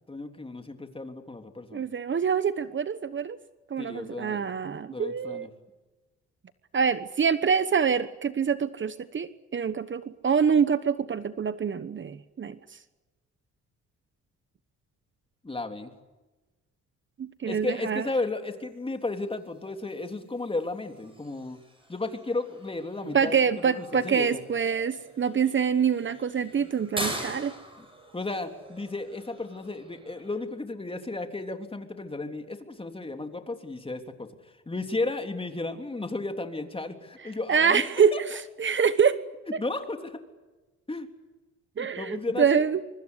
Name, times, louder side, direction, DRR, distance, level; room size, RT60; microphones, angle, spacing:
voice 1, 0.1-1.8 3.8-4.4 4.9-5.5 15.4-15.9 17.4-21.6 21.9-24.4 27.8-27.9 28.1-34.3 34.6-38.2 39.4-40.2 40.9-41.1 42.0-42.6, left 2 dB, 20° left, 6 dB, 3.3 m, -34 dB
voice 2, 1.7-3.4 3.7-5.5 6.7-12.6 17.2-18.0 23.1-27.5 37.5-39.2 41.8-42.8, right 6 dB, 40° right, 13 dB, 1.2 m, -25 dB
sound 1, 18.5-30.5, right 1 dB, 15° right, 7.9 m, -43 dB
25.0 x 24.0 x 8.2 m, 1.2 s
cardioid pair, 90°, 30 cm